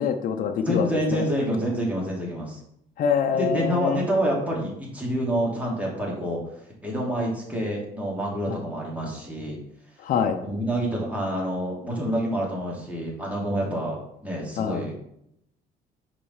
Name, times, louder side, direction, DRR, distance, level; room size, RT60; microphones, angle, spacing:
voice 1, 0.0-1.2 3.0-4.0 8.5-8.6 10.0-10.4 14.6-14.8, left 7 dB, 55° left, 5 dB, 0.7 m, -25 dB
voice 2, 0.6-2.6 3.3-6.4 6.8-9.6 10.4-15.0, equal, 10° right, -3 dB, 2.8 m, -27 dB
5.5 x 5.2 x 5.5 m, 0.75 s
cardioid pair, 110°, 17 cm